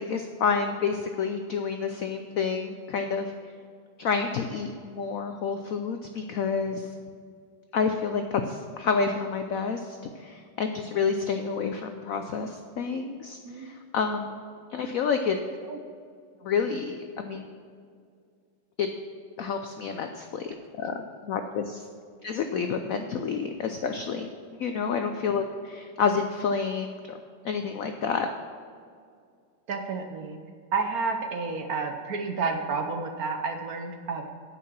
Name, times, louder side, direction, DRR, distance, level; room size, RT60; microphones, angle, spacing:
voice 1, 0.0-3.3 4.0-6.9 7.7-14.4 14.7-15.4 16.4-17.4 18.8-18.9 19.4-21.9 22.2-24.3 24.6-27.2 27.4-28.3, left 5 dB, 80° left, 6 dB, 0.7 m, -29 dB
voice 2, 13.5-13.8 15.6-15.8 25.3-25.4 29.7-30.4 30.7-34.3, right 4 dB, 60° right, 5 dB, 1.0 m, -30 dB
9.4 x 5.7 x 7.4 m, 2.2 s
omnidirectional pair, 2.1 m